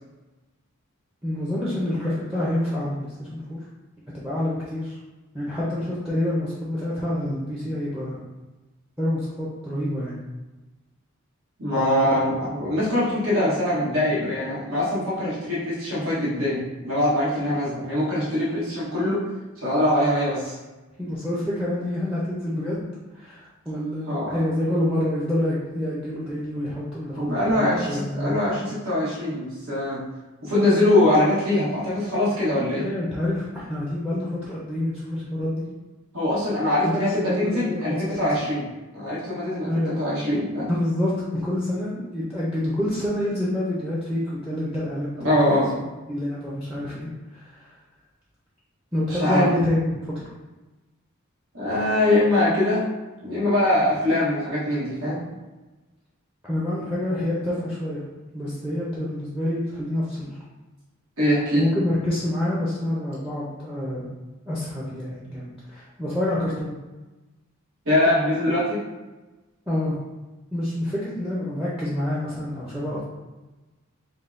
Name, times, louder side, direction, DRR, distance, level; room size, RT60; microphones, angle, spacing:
voice 1, 1.2-3.6 4.1-5.0 5.3-8.2 9.0-10.2 21.0-22.9 23.1-28.3 32.8-35.6 36.8-38.4 39.7-39.9 40.7-45.6 46.1-47.7 48.9-50.2 56.4-58.0 58.3-60.4 61.6-64.1 64.5-66.7 69.7-70.0 70.5-73.0, left 1 dB, 5° right, -7 dB, 0.6 m, -27 dB
voice 2, 11.6-19.2 19.6-20.6 24.1-24.4 27.2-30.0 30.4-32.9 36.1-38.7 38.9-40.7 45.2-45.7 49.1-49.5 51.5-52.8 53.2-55.2 61.2-61.7 67.8-68.8, left 1 dB, 75° right, -8 dB, 1.2 m, -23 dB
5.4 x 2.2 x 2.5 m, 1.1 s
head